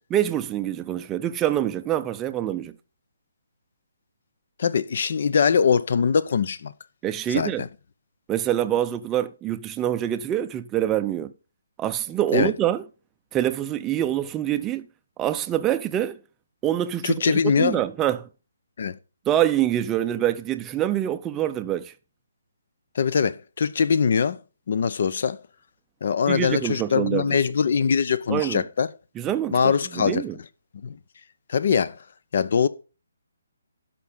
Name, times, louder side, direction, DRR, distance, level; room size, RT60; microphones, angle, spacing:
voice 1, 0.1-2.7 7.0-7.6 8.3-11.3 11.8-12.8 13.3-14.9 15.2-16.2 16.6-18.3 19.3-21.9 26.3-27.2 28.3-28.6 29.2-29.6 29.9-30.3, right 11 dB, 15° right, 0.6 m, -25 dB
voice 2, 4.6-6.7 7.3-7.7 12.3-12.5 17.0-17.8 18.8-19.0 22.9-24.4 24.7-25.4 26.0-28.9 29.5-30.2 30.8-31.0 31.5-32.0 32.3-32.7, left 6 dB, 55° left, 0.9 m, -22 dB
11.5 x 6.0 x 5.5 m
hypercardioid pair, 160°, 0 cm